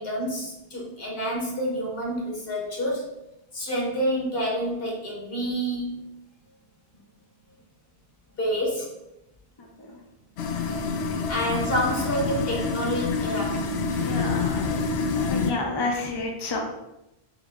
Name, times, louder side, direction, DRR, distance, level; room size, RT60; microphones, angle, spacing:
voice 1, 0.0-3.0 3.5-6.0 8.4-8.9 11.3-13.6, equal, 65° left, -3 dB, 1.5 m, -28 dB
voice 2, 9.6-10.0 11.2-12.0 13.9-14.7 15.2-16.6, left 3 dB, 30° left, 0 dB, 0.5 m, -31 dB
sound 1, 10.4-15.5, left 4 dB, 85° left, 0.8 m, -27 dB
4.0 x 3.0 x 3.6 m, 0.89 s
omnidirectional pair, 1.0 m